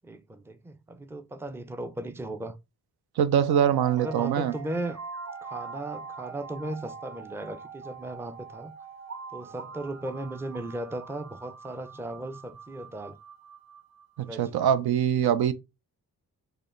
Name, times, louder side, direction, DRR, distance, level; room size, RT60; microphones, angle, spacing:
voice 1, 0.0-2.6 3.9-5.0 5.4-8.7 9.3-13.2 14.2-14.6, right 2 dB, 5° right, 0.4 m, -36 dB
voice 2, 3.2-4.5 14.2-15.5, right 9 dB, 75° right, 0.5 m, -23 dB
sound 1, 3.3-14.3, right 5 dB, 45° right, 0.9 m, -43 dB
4.7 x 2.1 x 3.1 m
cardioid pair, 45°, 39 cm